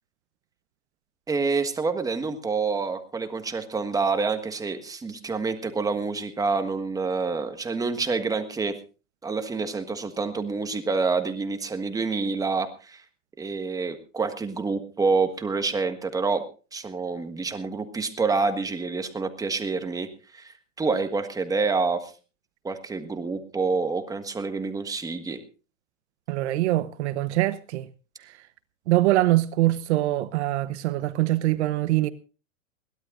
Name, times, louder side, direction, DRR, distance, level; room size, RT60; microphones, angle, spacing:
voice 1, 1.3-8.8 9.2-13.0 13.4-16.4 16.7-20.1 20.3-20.5 20.8-22.1 22.6-25.4, right 4 dB, 10° right, 1.5 m, -27 dB
voice 2, 26.3-27.9 28.2-28.3 28.9-32.1, right 16 dB, 60° right, 1.0 m, -23 dB
22.0 x 16.5 x 2.5 m
hypercardioid pair, 135°, 39 cm